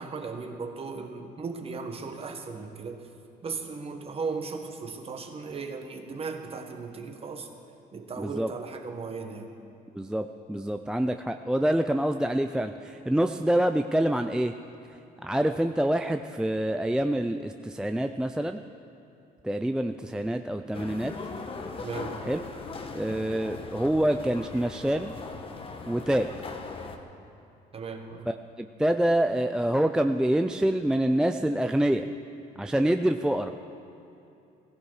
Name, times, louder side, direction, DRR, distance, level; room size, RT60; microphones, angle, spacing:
voice 1, 0.0-3.1 3.4-7.5 7.9-9.5 21.8-22.2 27.7-28.3, right 4 dB, 35° right, 5 dB, 1.5 m, -36 dB
voice 2, 8.2-8.5 9.9-14.5 15.2-18.6 19.4-21.1 22.2-22.4 22.9-25.1 25.9-26.3 28.3-32.1 32.6-33.5, right 1 dB, 5° right, 7 dB, 0.4 m, -26 dB
sound 1, 20.7-27.0, left 3 dB, 35° left, 1.2 m, -39 dB
16.0 x 15.5 x 4.8 m, 2.8 s
cardioid pair, 110°, 17 cm